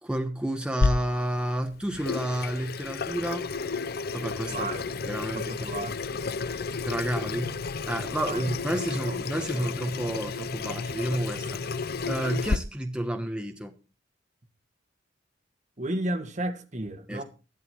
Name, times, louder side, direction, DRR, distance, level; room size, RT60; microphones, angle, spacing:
voice 1, 0.0-3.5 4.1-4.7 5.0-5.7 6.8-7.6 7.9-13.8 17.1-17.2, right 1 dB, 5° right, 1.2 m, -30 dB
Water tap faucet / Sink (filling or washing), 0.8-12.6, left 4 dB, 55° left, 0.6 m, -31 dB
voice 2, 4.5-4.9 5.3-6.1 8.2-8.4 9.1-9.2 9.5-9.7 15.8-17.2, right 1 dB, 40° right, 1.8 m, -33 dB
13.5 x 11.5 x 4.6 m
head